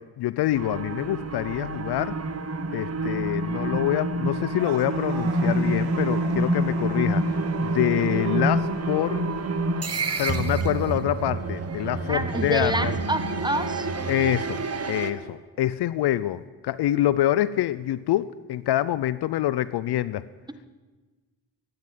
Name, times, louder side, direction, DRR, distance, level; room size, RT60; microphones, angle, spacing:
voice 1, 0.0-2.2 2.7-9.3 10.2-12.9 14.1-20.2, left 13 dB, 60° left, 18 dB, 0.6 m, -26 dB
sound 1, 0.5-15.1, right 2 dB, 35° right, 1.4 m, -27 dB
sound 2, 4.6-15.4, right 6 dB, 80° right, 1.9 m, -44 dB
voice 2, 12.1-13.9, right 1 dB, 10° right, 10 dB, 1.4 m, -27 dB
13.5 x 9.6 x 9.2 m, 1.3 s
supercardioid pair, 55°, 45 cm